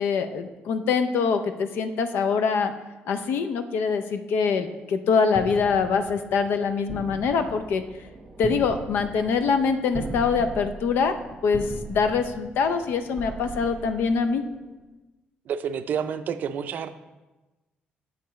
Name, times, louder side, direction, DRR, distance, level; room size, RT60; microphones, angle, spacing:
voice 1, 0.0-2.7 3.1-7.8 8.4-11.1 11.4-14.4, left 5 dB, 80° left, 8 dB, 0.5 m, -24 dB
sound 1, 5.3-14.6, right 2 dB, 15° right, 1.0 m, -39 dB
voice 2, 15.5-16.9, right 7 dB, 55° right, 10 dB, 0.4 m, -29 dB
7.9 x 6.7 x 3.1 m, 1.1 s
cardioid pair, 155°, 4 cm